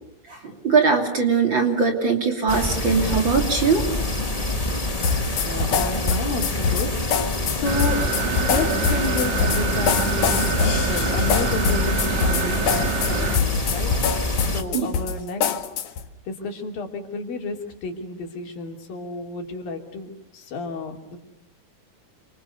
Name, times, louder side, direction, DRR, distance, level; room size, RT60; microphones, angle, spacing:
voice 1, 0.3-3.8 14.7-14.9, right 5 dB, 35° right, 3 dB, 3.4 m, -21 dB
sound 1, 2.5-14.6, left 2 dB, 20° left, 0.9 m, -26 dB
sound 2, 5.0-16.1, left 6 dB, 65° left, 2.8 m, -24 dB
voice 2, 5.5-7.1 7.5-8.0 8.4-13.9 14.5-15.7 16.3-17.6 17.8-21.2, left 3 dB, 85° left, 3 dB, 4.8 m, -31 dB
sound 3, 7.6-13.4, right 6 dB, 55° right, 3.0 m, -27 dB
28.5 x 26.0 x 6.9 m, 0.75 s
omnidirectional pair, 4.0 m